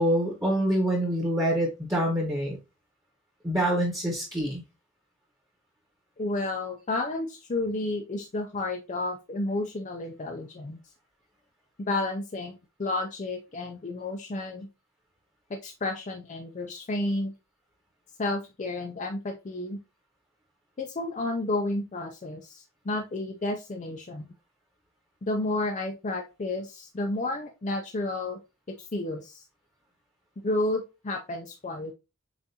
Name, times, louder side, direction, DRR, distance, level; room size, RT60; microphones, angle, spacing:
voice 1, 0.0-2.6 3.4-4.6, equal, 15° right, -1 dB, 1.0 m, -26 dB
voice 2, 6.2-10.8 11.9-14.7 15.5-17.3 18.2-19.8 20.8-24.3 25.3-28.4 28.7-29.4 30.4-31.9, left 2 dB, 35° left, 3 dB, 0.5 m, -31 dB
7.1 x 2.6 x 2.8 m, 0.27 s
head